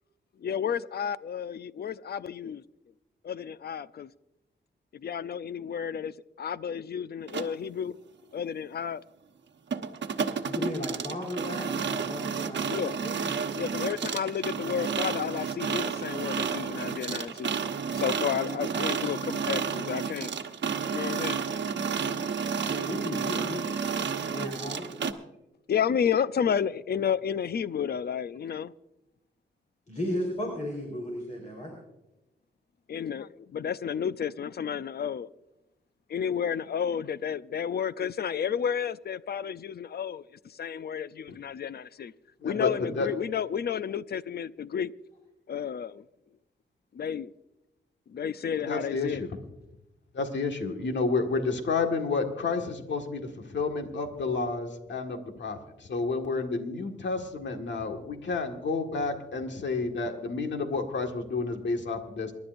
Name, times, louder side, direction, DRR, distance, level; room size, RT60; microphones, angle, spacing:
voice 1, 0.4-2.6 3.2-4.1 5.0-7.9 8.3-9.0 12.7-12.9 13.6-17.5 18.0-20.3 20.9-21.4 25.7-28.7 32.9-35.3 36.1-40.2 40.6-42.1 42.4-44.9 45.5-46.0 46.9-47.3 48.1-49.2, left 8 dB, 55° left, 0.5 m, -31 dB
sound 1, 7.3-7.5 9.7-25.1, right 6 dB, 70° right, 1.1 m, -31 dB
voice 2, 10.4-13.1 22.6-23.6 24.3-24.9 29.9-31.7, left 1 dB, 40° left, 4.2 m, -35 dB
voice 3, 42.4-43.1 48.6-49.5 50.1-62.3, left 4 dB, 70° left, 1.8 m, -30 dB
27.5 x 11.5 x 2.6 m
cardioid pair, 80°, 19 cm